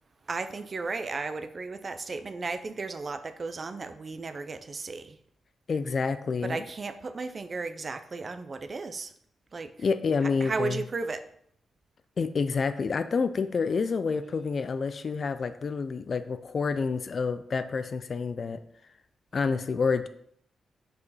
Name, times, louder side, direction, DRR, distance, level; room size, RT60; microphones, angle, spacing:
voice 1, 0.3-5.2 6.4-9.1 9.5-9.7 10.2-11.3, right 4 dB, 30° right, 10 dB, 0.4 m, -34 dB
voice 2, 5.7-6.6 9.8-10.8 12.2-18.6 19.3-20.1, left 5 dB, 40° left, 11 dB, 0.4 m, -28 dB
5.2 x 4.8 x 4.1 m, 0.67 s
wide cardioid pair, 150°, 0 cm